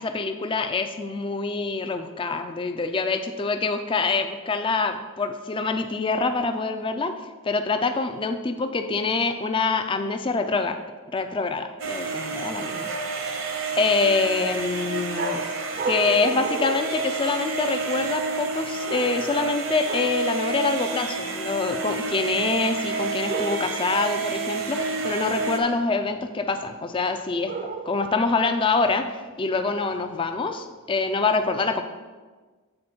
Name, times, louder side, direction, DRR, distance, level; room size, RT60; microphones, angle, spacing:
voice 1, 0.0-7.1 7.4-10.8 11.1-12.9 13.8-15.4 15.9-27.5 27.9-29.1 29.4-31.8, left 4 dB, 25° left, 7 dB, 0.3 m, -25 dB
sound 1, 11.8-25.6, right 4 dB, 65° right, 0.8 m, -29 dB
sound 2, 15.1-17.7 18.8-19.5 19.8-20.3 23.3-23.9 27.5-28.2, right 3 dB, 40° right, 0.5 m, -33 dB
7.7 x 4.2 x 4.4 m, 1.4 s
head